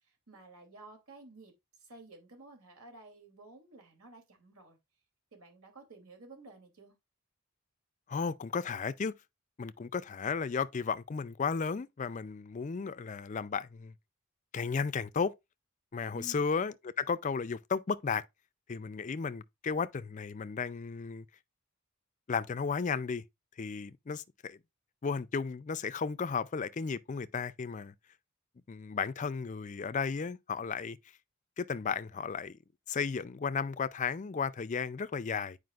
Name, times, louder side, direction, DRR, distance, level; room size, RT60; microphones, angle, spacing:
voice 1, 0.0-4.8 5.3-6.9 16.1-16.5, right 2 dB, 80° right, 2.8 m, -53 dB
voice 2, 8.1-9.1 9.6-13.9 14.5-15.3 15.9-18.2 18.7-21.3 22.3-23.2 23.6-24.6 25.0-27.9 28.7-31.0 31.6-32.6 32.9-35.6, left 5 dB, 35° left, 0.4 m, -34 dB
9.4 x 5.0 x 2.4 m
head